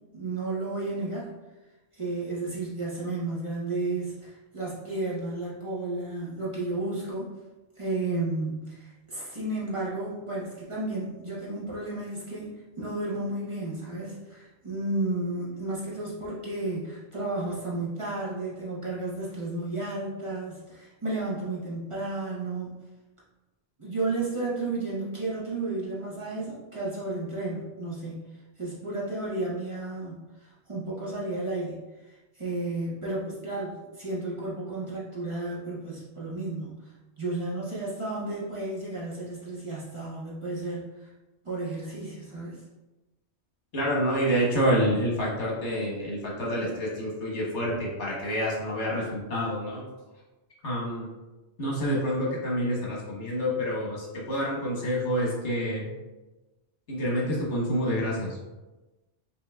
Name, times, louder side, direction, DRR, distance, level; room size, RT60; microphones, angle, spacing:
voice 1, 0.1-1.3 1.9-7.3 7.8-12.5 12.8-22.8 23.8-28.2 28.6-31.8 32.1-36.9 37.2-41.1 41.4-42.6, right 2 dB, 30° right, -8 dB, 0.9 m, -32 dB
voice 2, 43.7-49.8 50.6-51.1 51.6-55.9 56.9-58.4, equal, 90° left, -4 dB, 1.4 m, -28 dB
5.3 x 2.7 x 2.3 m, 1.1 s
omnidirectional pair, 1.2 m